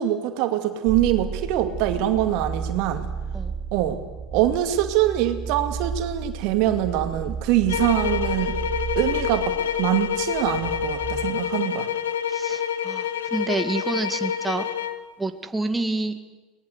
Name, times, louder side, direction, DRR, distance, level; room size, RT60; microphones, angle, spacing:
voice 1, 0.0-3.1 3.7-4.0 4.3-8.5 9.0-11.9, right 12 dB, 65° right, 7 dB, 2.2 m, -24 dB
sound 1, 0.8-11.3, right 5 dB, 35° right, 4.8 m, -33 dB
sound 2, 7.7-15.1, left 9 dB, 85° left, 1.2 m, -27 dB
voice 2, 12.3-14.6 15.2-16.3, right 2 dB, 10° right, 7 dB, 1.9 m, -28 dB
23.5 x 20.0 x 8.1 m, 1.2 s
hypercardioid pair, 80°, 0 cm